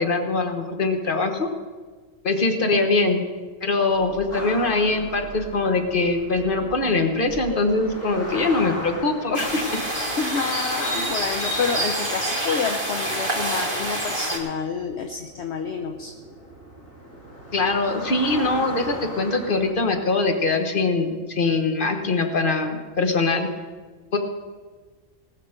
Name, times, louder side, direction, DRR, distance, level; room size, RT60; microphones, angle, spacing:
voice 1, 0.0-1.5 2.2-3.2 3.6-9.6 17.5-23.5 24.1-24.2, left 3 dB, 40° left, 5 dB, 1.4 m, -22 dB
sound 1, 3.9-10.4, equal, 20° left, 5.0 m, -43 dB
sound 2, 4.3-19.7, equal, 80° left, 2.8 m, -39 dB
sound 3, 9.3-14.4, right 1 dB, 20° right, 2.5 m, -27 dB
voice 2, 10.2-16.1, left 5 dB, 60° left, 4 dB, 1.1 m, -28 dB
19.0 x 6.6 x 6.6 m, 1.5 s
omnidirectional pair, 1.3 m